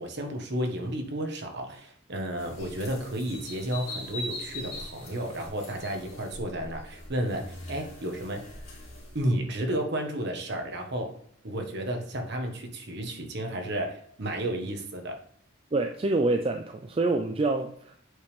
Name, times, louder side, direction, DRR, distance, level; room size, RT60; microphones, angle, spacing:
voice 1, 0.0-8.4 9.1-11.2 11.4-15.2, right 1 dB, 50° right, 3 dB, 1.2 m, -32 dB
sound 1, 2.4-9.3, left 1 dB, 35° left, 3.1 m, -42 dB
voice 2, 15.7-18.0, right 2 dB, 25° right, 4 dB, 0.4 m, -26 dB
8.1 x 5.2 x 3.3 m, 0.62 s
head